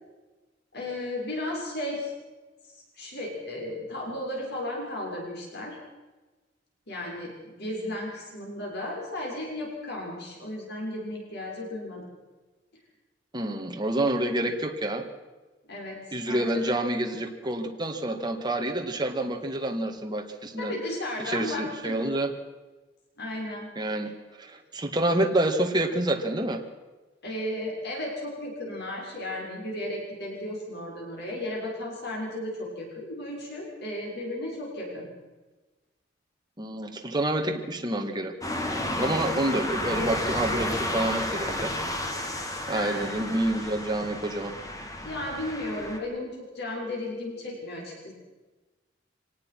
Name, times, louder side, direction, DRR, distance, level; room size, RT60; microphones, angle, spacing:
voice 1, 0.7-2.1 2.7-5.8 6.9-12.1 15.7-16.0 16.3-16.6 20.6-22.0 23.2-23.7 24.0-24.1 27.2-35.1 42.7-43.1 45.0-48.1, left 1 dB, 60° left, -2 dB, 6.7 m, -34 dB
voice 2, 13.3-15.1 16.1-20.7 21.2-22.3 23.8-24.1 24.4-26.6 36.6-38.4 39.0-41.8 42.7-44.5, right 1 dB, 20° right, 3 dB, 2.0 m, -28 dB
sound 1, 38.4-46.0, left 1 dB, 20° left, 2.5 m, -32 dB
24.0 x 19.0 x 6.1 m, 1.2 s
head